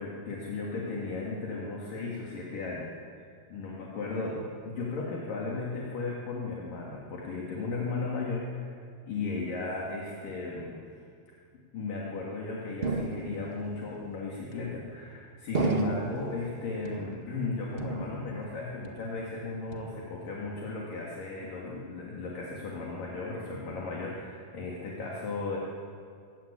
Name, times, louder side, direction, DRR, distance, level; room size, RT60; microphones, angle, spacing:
voice 1, 0.0-2.9 3.2-8.8 9.1-11.0 11.7-25.6, left 3 dB, 60° left, -3 dB, 4.3 m, -35 dB
sound 1, 12.8-13.7 14.5-15.0 15.5-16.3 16.8-17.5 17.8-18.5 18.8-19.3 19.7-20.3, right 4 dB, 80° right, 0.5 m, -34 dB
23.0 x 20.0 x 8.6 m, 2.4 s
omnidirectional pair, 4.4 m